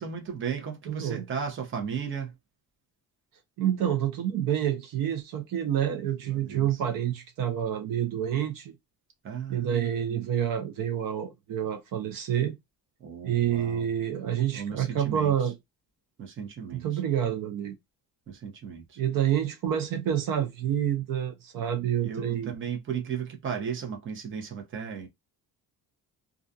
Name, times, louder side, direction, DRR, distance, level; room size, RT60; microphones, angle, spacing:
voice 1, 0.0-2.3 6.3-6.8 9.2-10.2 13.0-13.9 14.5-15.5 16.2-17.0 18.3-19.0 22.0-25.1, right 7 dB, 35° right, 0.8 m, -35 dB
voice 2, 0.9-1.3 3.6-8.7 9.5-12.6 13.2-15.5 16.7-17.7 19.0-22.5, right 10 dB, 65° right, 0.7 m, -28 dB
2.4 x 2.3 x 2.5 m
cardioid pair, 165°, 35 cm